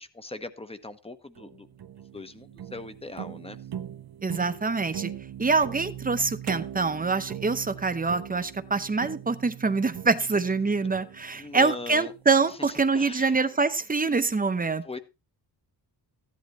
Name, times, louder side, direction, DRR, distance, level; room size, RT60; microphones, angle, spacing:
voice 1, 0.0-1.7 2.1-3.6 11.4-12.1 12.5-13.3 14.8-15.0, left 2 dB, 15° left, 0.9 m, -40 dB
sound 1, 1.4-12.6, right 10 dB, 60° right, 0.8 m, -41 dB
voice 2, 4.2-5.1 5.4-14.8, right 4 dB, 20° right, 0.8 m, -25 dB
14.5 x 10.5 x 3.1 m
wide cardioid pair, 160°, 43 cm